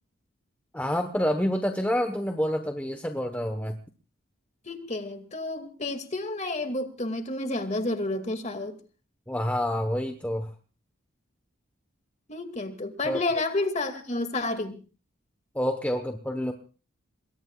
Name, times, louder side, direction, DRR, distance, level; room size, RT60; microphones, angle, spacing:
voice 1, 0.7-3.8 9.3-10.5 13.0-13.2 15.5-16.5, equal, 5° left, 6 dB, 1.0 m, -28 dB
voice 2, 4.7-8.8 12.3-14.8, left 2 dB, 30° left, 7 dB, 2.1 m, -30 dB
27.5 x 22.0 x 2.4 m, 0.36 s
head